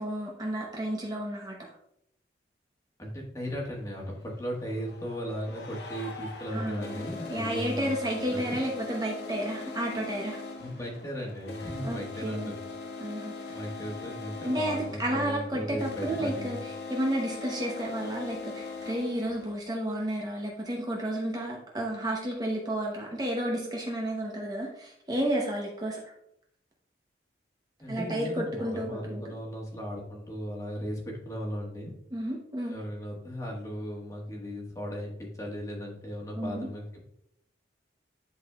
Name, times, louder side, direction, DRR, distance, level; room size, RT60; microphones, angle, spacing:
voice 1, 0.0-1.7 6.5-10.4 11.8-12.5 13.0-13.6 14.4-26.1 27.9-29.2 32.1-32.8 36.4-36.7, right 1 dB, 20° right, -1 dB, 0.8 m, -32 dB
voice 2, 3.0-8.0 8.3-8.6 10.6-12.6 13.5-16.5 27.8-31.9 32.7-37.0, equal, 20° left, -2 dB, 1.4 m, -36 dB
sound 1, 3.4-3.5 4.5-19.6, left 3 dB, 75° left, 0.7 m, -41 dB
10.5 x 4.0 x 2.3 m, 0.74 s
head